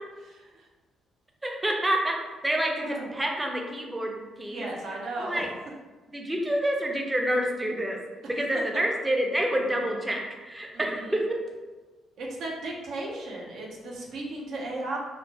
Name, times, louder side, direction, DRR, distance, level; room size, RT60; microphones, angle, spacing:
voice 1, 1.4-4.7 5.2-5.5 6.1-8.0 8.3-11.4, right 1 dB, 15° right, 1 dB, 0.5 m, -28 dB
voice 2, 2.8-3.1 4.5-5.4 10.7-11.2 12.2-15.0, right 2 dB, 75° right, -2 dB, 0.6 m, -35 dB
2.4 x 2.1 x 3.1 m, 1.3 s
cardioid pair, 90°, 0 cm